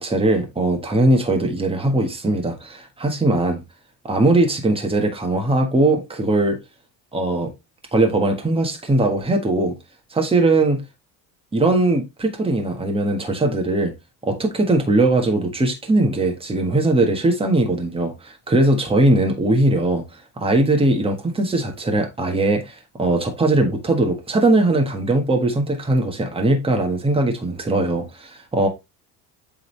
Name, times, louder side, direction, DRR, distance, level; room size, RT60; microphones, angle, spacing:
voice 1, 0.0-3.6 4.0-6.6 7.1-7.5 7.9-9.7 10.1-10.8 11.5-13.9 14.2-20.0 20.4-28.7, right 2 dB, 15° right, 1.5 m, -20 dB
7.7 x 3.9 x 3.2 m
cardioid pair, 120°, 40 cm